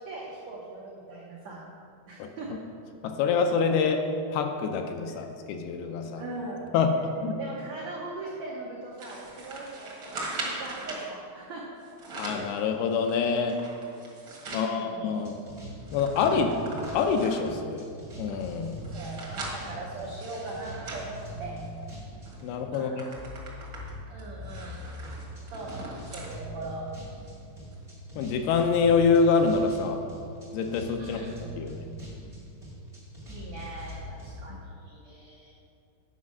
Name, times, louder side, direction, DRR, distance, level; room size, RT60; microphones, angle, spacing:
voice 1, 0.0-1.7 2.1-2.5 5.1-5.2 6.2-6.6 7.4-11.6 14.5-15.2 18.9-21.6 22.7-23.1 24.1-24.8 25.5-26.8 31.0-31.4 33.3-35.5, right 2 dB, 85° right, -4 dB, 1.5 m, -40 dB
voice 2, 3.0-6.2 6.7-7.4 12.2-13.6 14.5-15.4 15.9-16.6 16.9-17.9 18.2-18.8 22.4-23.1 28.2-30.0 30.5-31.2 31.6-31.9 34.5-34.6, left 5 dB, 80° left, 5 dB, 2.4 m, -26 dB
sound 1, 9.0-11.1 11.8-12.5 13.0-14.7 15.2-15.3 15.5-17.5 18.1-21.8 22.3-22.4 22.7-26.3 26.8-26.9 27.7-27.8, right 2 dB, 60° right, 1.2 m, -40 dB
sound 2, 15.2-22.5 23.1-34.3, equal, 30° right, 0.6 m, -42 dB
9.7 x 5.2 x 6.2 m, 2.4 s
omnidirectional pair, 4.7 m